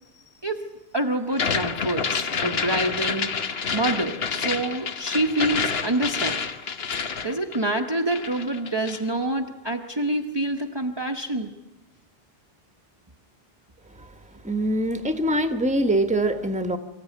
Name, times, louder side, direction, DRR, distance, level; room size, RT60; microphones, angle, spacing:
voice 1, 0.4-3.3 3.7-6.5 7.2-11.5, right 1 dB, 25° right, 4 dB, 1.0 m, -27 dB
sound 1, 1.3-9.1, left 5 dB, 65° left, 1.3 m, -28 dB
voice 2, 14.4-16.8, right 1 dB, 5° right, 9 dB, 1.2 m, -23 dB
24.5 x 14.5 x 9.3 m, 1.0 s
omnidirectional pair, 1.1 m